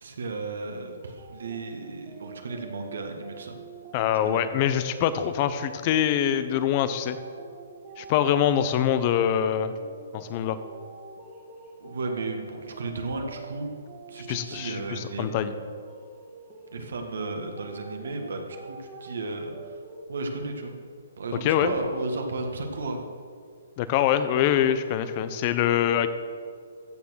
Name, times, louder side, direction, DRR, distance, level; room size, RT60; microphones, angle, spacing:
voice 1, 0.0-3.6 4.2-4.5 11.8-13.7 14.1-15.7 16.7-19.5 20.1-20.7 21.2-23.0, right 3 dB, 70° right, 3 dB, 1.9 m, -34 dB
sound 1, 1.0-20.0, right 4 dB, 25° right, 1.9 m, -46 dB
voice 2, 3.9-7.2 8.0-9.7 10.1-10.6 14.3-15.5 21.4-21.7 23.8-26.1, left 10 dB, 35° left, 12 dB, 0.9 m, -24 dB
15.0 x 7.0 x 6.4 m, 2.2 s
hypercardioid pair, 135°, 0 cm